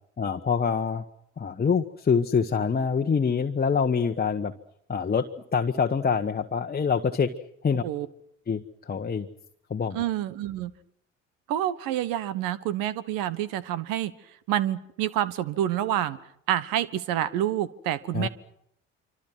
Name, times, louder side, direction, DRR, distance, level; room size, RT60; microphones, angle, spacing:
voice 1, 0.2-1.0 1.4-4.5 4.9-7.3 7.6-7.8 8.5-9.3 9.7-10.0 18.1-18.3, left 6 dB, 25° left, 4 dB, 1.3 m, -25 dB
voice 2, 9.9-10.7 11.5-14.1 14.5-16.2 16.5-18.3, right 12 dB, 60° right, 16 dB, 1.4 m, -28 dB
27.0 x 25.5 x 6.2 m, 0.74 s
figure-of-eight pair, 55°, 38 cm